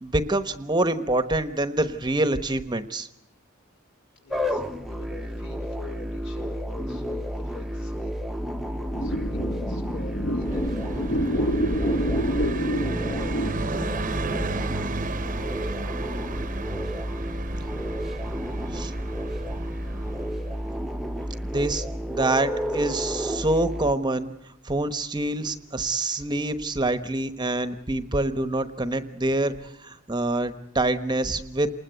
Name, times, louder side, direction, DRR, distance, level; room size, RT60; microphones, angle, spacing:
voice 1, 0.0-3.1 18.7-18.9 21.4-24.3 24.6-31.7, right 2 dB, 20° right, 10 dB, 1.1 m, -26 dB
voice 2, 4.2-8.2 8.4-14.3 18.7-18.9, left 2 dB, 65° left, 4 dB, 5.3 m, -45 dB
sound 1, 4.3-23.9, equal, ahead, 0.9 m, -31 dB
sound 2, 8.9-14.8, equal, 45° left, 1.3 m, -28 dB
Car passing by, 10.3-20.9, right 3 dB, 40° right, 1.0 m, -34 dB
28.5 x 20.5 x 8.2 m, 0.81 s
head